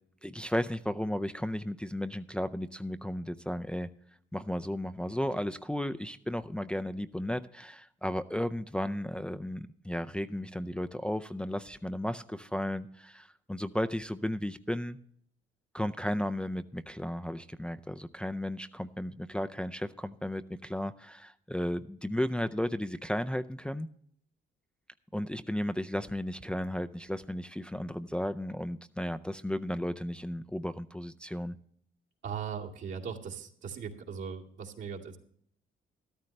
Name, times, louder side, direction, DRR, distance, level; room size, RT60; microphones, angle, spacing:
voice 1, 0.2-3.9 4.3-15.0 15.7-23.9 25.1-31.6, left 1 dB, 5° left, 9 dB, 0.5 m, -34 dB
voice 2, 32.2-35.2, right 6 dB, 70° right, -2 dB, 2.5 m, -39 dB
13.5 x 13.0 x 3.3 m, 0.64 s
cardioid pair, 90°, 20 cm